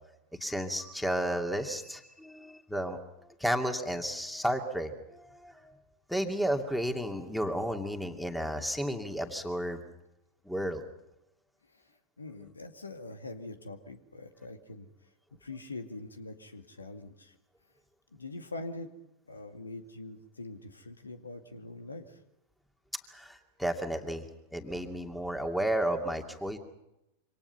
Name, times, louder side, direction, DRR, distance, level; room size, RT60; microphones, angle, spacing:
voice 1, 0.4-3.0 3.4-5.8 6.1-9.8 10.5-10.8 23.1-24.3 24.5-26.6, equal, ahead, 5 dB, 2.5 m, -32 dB
voice 2, 12.2-14.9 15.4-17.4 18.1-18.9 19.3-22.2, left 2 dB, 75° left, 7 dB, 2.2 m, -43 dB
27.5 x 26.0 x 5.7 m, 0.90 s
figure-of-eight pair, 90°, 0 cm